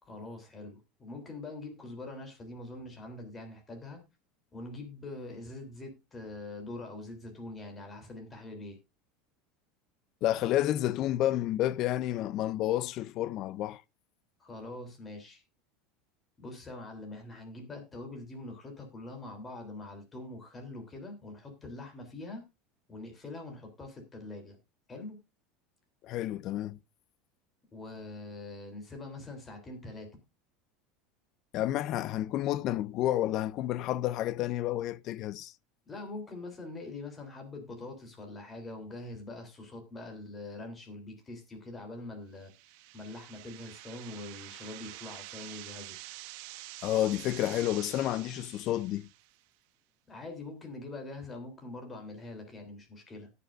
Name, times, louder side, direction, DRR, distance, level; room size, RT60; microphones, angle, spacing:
voice 1, 0.0-4.0 4.5-8.8 14.4-15.4 16.4-22.4 22.9-24.6 24.9-25.2 27.7-30.1 35.9-42.5 42.9-46.0 50.1-53.3, left 2 dB, 15° left, 3.3 m, -44 dB
voice 2, 10.2-13.8 26.0-26.8 31.5-35.5 46.8-49.1, left 13 dB, 45° left, 0.5 m, -30 dB
sound 1, 42.4-49.4, right 16 dB, 65° right, 1.0 m, -47 dB
18.0 x 6.8 x 2.5 m
supercardioid pair, 145°, 0 cm